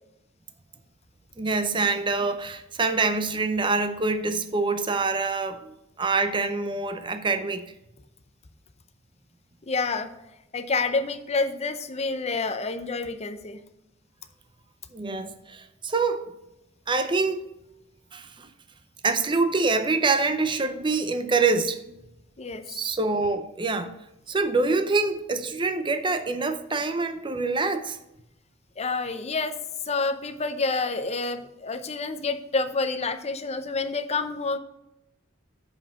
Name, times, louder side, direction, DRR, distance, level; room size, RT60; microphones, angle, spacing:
voice 1, 1.4-7.6 14.9-16.2 16.9-17.4 18.1-18.5 19.0-21.8 22.7-23.9 24.3-28.0, right 3 dB, 25° right, 0.6 m, -25 dB
voice 2, 9.7-10.1 10.5-13.6 22.4-22.6 28.8-29.6 29.8-34.6, left 3 dB, 30° left, 0.6 m, -28 dB
7.2 x 5.4 x 5.8 m
head